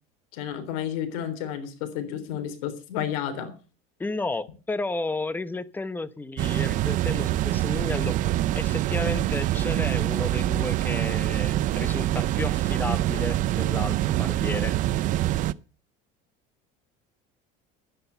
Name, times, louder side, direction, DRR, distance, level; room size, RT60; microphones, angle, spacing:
voice 1, 0.3-3.5, left 9 dB, 80° left, 3.5 m, -31 dB
voice 2, 4.0-8.2 8.5-14.8, left 2 dB, 10° left, 0.9 m, -32 dB
sound 1, 6.4-15.5, right 14 dB, 50° right, 0.6 m, -25 dB
11.5 x 9.8 x 6.9 m
cardioid pair, 125°, 17 cm